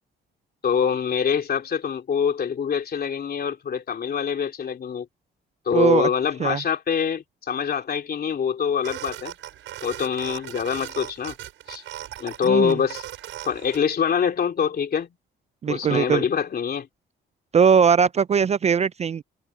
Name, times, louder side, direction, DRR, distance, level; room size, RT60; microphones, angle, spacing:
voice 1, 0.6-5.1 5.7-9.3 9.8-11.3 11.7-11.8 12.2-13.0 13.5-15.1 15.7-16.9, left 7 dB, 50° left, 2.9 m, -24 dB
voice 2, 5.7-6.1 6.4-6.6 12.4-12.8 15.6-16.2 17.5-19.2, right 6 dB, 35° right, 0.4 m, -20 dB
sound 1, 8.8-13.8, right 13 dB, 80° right, 4.7 m, -38 dB
cardioid pair, 90°, 20 cm